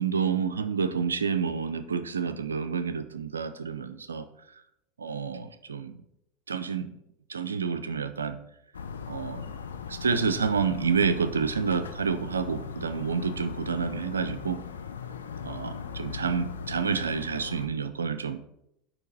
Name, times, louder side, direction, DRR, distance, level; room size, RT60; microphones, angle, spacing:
voice 1, 0.0-4.3 5.0-6.0 6.5-6.9 7.3-8.4 9.1-9.4 9.9-14.6 15.4-18.4, right 6 dB, 85° right, 11 dB, 0.4 m, -29 dB
sound 1, 8.7-17.7, left 6 dB, 85° left, 0.5 m, -39 dB
8.3 x 2.9 x 5.3 m, 0.80 s
hypercardioid pair, 80°, 0 cm